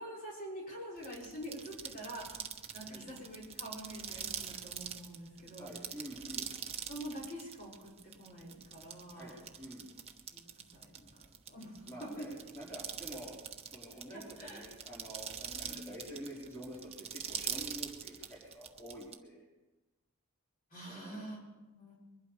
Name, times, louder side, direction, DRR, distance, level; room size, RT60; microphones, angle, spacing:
voice 1, 0.0-2.3 2.7-5.7 6.8-9.4 10.3-12.3 14.1-14.7 15.5-15.9 20.7-21.4 21.7-21.9, equal, 40° left, -5 dB, 5.5 m, -46 dB
sound 1, 1.0-19.2, right 8 dB, 30° right, 0.9 m, -44 dB
voice 2, 5.6-6.5 9.1-9.9 11.9-13.3 13.7-19.4 20.8-21.2, right 1 dB, 10° left, -6 dB, 4.5 m, -48 dB
22.5 x 12.0 x 5.1 m, 1.1 s
head